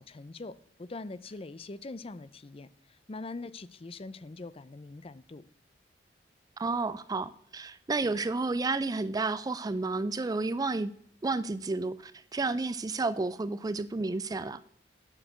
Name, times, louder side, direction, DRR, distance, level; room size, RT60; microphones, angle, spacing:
voice 1, 0.0-5.5, left 3 dB, 30° left, 17 dB, 0.5 m, -43 dB
voice 2, 6.6-10.9 11.2-14.6, right 3 dB, 20° right, 15 dB, 0.3 m, -31 dB
9.9 x 7.2 x 7.9 m, 0.62 s
head